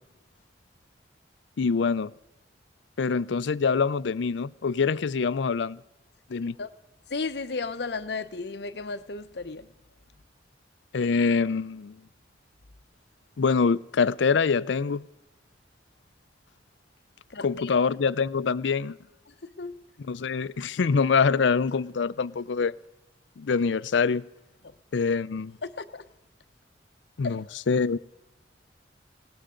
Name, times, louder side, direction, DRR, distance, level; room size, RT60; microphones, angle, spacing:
voice 1, 1.6-2.1 3.0-5.8 6.3-6.5 10.9-12.0 13.4-15.1 17.4-19.0 20.0-22.7 23.4-24.2 24.9-25.5 27.2-28.0, left 5 dB, 75° left, 0.5 m, -25 dB
voice 2, 7.1-9.7 17.3-17.8 19.4-19.8 25.6-26.0 27.2-27.4, left 4 dB, 60° left, 0.8 m, -34 dB
19.5 x 17.5 x 3.8 m
head